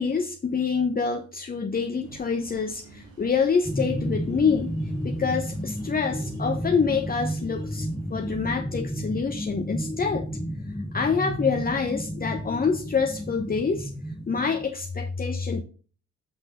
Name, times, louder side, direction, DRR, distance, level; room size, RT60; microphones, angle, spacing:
voice 1, 0.0-4.8 5.0-10.3 10.6-15.6, left 5 dB, 30° left, 4 dB, 1.0 m, -26 dB
sound 1, 2.0-8.4, right 3 dB, 70° right, 3.1 m, -51 dB
sound 2, 3.6-14.7, equal, 10° left, 1.1 m, -32 dB
7.9 x 6.2 x 3.7 m, 0.38 s
cardioid pair, 90°, 30 cm